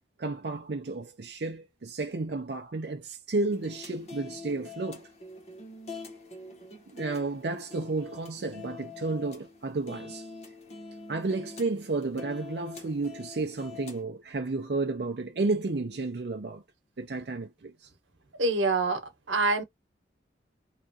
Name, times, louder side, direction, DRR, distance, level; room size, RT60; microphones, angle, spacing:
voice 1, 0.2-5.1 6.9-10.3 11.1-16.6 17.0-17.9, right 3 dB, 60° right, 0.5 m, -32 dB
sound 1, 3.5-14.0, left 4 dB, 35° left, 0.9 m, -45 dB
voice 2, 18.4-19.0 19.3-19.6, right 3 dB, 90° right, 1.0 m, -25 dB
3.1 x 2.4 x 2.6 m
head